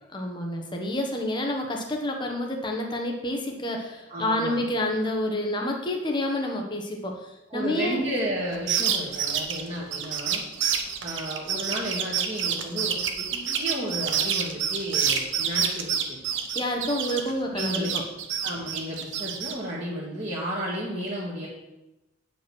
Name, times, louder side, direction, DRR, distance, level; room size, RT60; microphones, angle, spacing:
voice 1, 0.1-7.2 7.5-8.0 16.5-18.0, left 1 dB, 25° left, 2 dB, 1.2 m, -28 dB
voice 2, 4.1-4.6 7.5-10.4 11.0-16.2 17.5-17.9 18.4-21.5, equal, 30° right, -7 dB, 1.9 m, -33 dB
pollitos chiken lillttle bird ken, 8.5-17.3 17.6-19.5, right 8 dB, 75° right, 1.0 m, -27 dB
9.0 x 5.2 x 6.2 m, 0.96 s
head